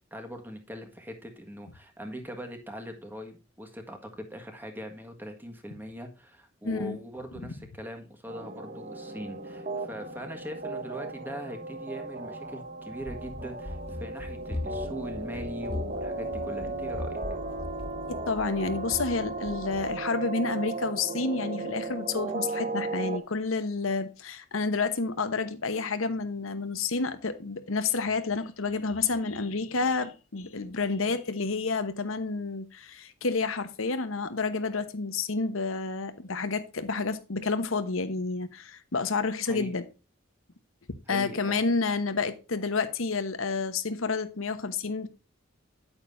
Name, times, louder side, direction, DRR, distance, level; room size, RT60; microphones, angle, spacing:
voice 1, 0.1-17.2 39.4-39.7 41.1-41.6, equal, 10° right, 1.6 m, -41 dB
voice 2, 6.6-7.0 18.1-39.9 41.1-45.1, left 4 dB, 75° left, 1.0 m, -29 dB
sound 1, 8.3-23.2, right 2 dB, 40° right, 1.0 m, -36 dB
Run, 13.0-20.0, left 1 dB, 25° left, 0.8 m, -40 dB
9.1 x 9.0 x 2.6 m
head